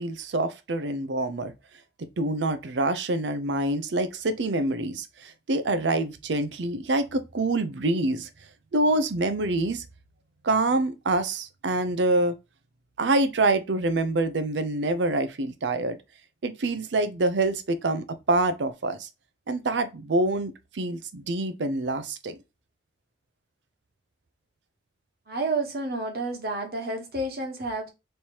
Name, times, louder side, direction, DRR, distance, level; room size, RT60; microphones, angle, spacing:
voice 1, 0.0-1.5 2.0-8.3 8.7-9.8 10.4-12.4 13.0-16.0 16.4-19.1 19.5-22.4, right 2 dB, 90° right, 0.6 m, -26 dB
voice 2, 25.3-27.9, right 2 dB, 60° right, 1.1 m, -30 dB
3.3 x 2.8 x 4.4 m
head